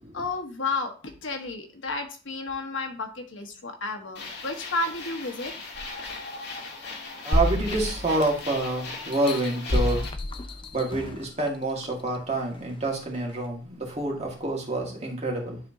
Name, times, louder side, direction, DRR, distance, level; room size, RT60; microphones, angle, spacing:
voice 1, 0.1-5.5, left 3 dB, 85° left, 4 dB, 1.2 m, -32 dB
sound 1, 4.1-10.1, left 3 dB, 60° left, 1.7 m, -38 dB
voice 2, 7.2-10.1 10.7-15.6, right 2 dB, 35° right, -1 dB, 1.8 m, -28 dB
sound 2, 7.3-8.6 9.1-11.3 11.8-11.9, left 1 dB, 25° left, 0.6 m, -28 dB
11.0 x 3.7 x 2.7 m, 0.37 s
head